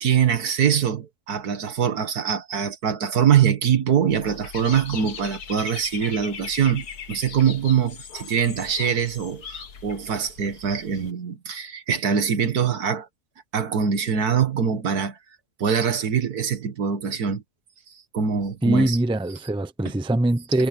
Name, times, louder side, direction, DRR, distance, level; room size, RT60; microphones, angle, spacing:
voice 1, 0.0-13.1 13.5-15.2 15.6-17.4 18.1-19.0, right 7 dB, 70° right, 1.9 m, -23 dB
Dog / Bird, 4.1-11.1, left 7 dB, 75° left, 1.9 m, -39 dB
voice 2, 18.6-20.7, right 1 dB, 5° right, 0.6 m, -22 dB
omnidirectional pair, 1.7 m